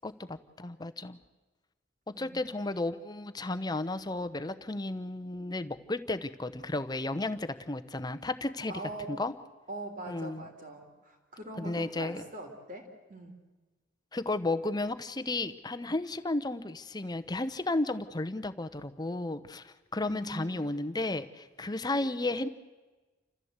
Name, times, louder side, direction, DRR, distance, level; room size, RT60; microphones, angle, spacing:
voice 1, 0.0-1.2 2.2-8.7 9.1-9.3 10.1-10.5 11.6-12.2 14.1-22.5, left 2 dB, 20° left, 10 dB, 0.9 m, -33 dB
voice 2, 2.1-2.4 8.7-9.1 9.7-13.4 20.1-20.5, right 2 dB, 45° right, 3 dB, 3.5 m, -42 dB
29.0 x 14.5 x 8.1 m, 1.3 s
head